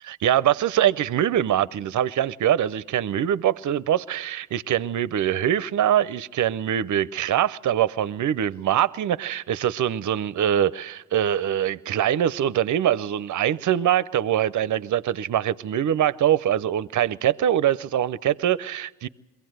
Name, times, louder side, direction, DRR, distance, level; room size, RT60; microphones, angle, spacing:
voice 1, 0.0-19.1, right 10 dB, 60° right, 0.6 m, -23 dB
22.5 x 16.0 x 7.8 m
cardioid pair, 60°, 33 cm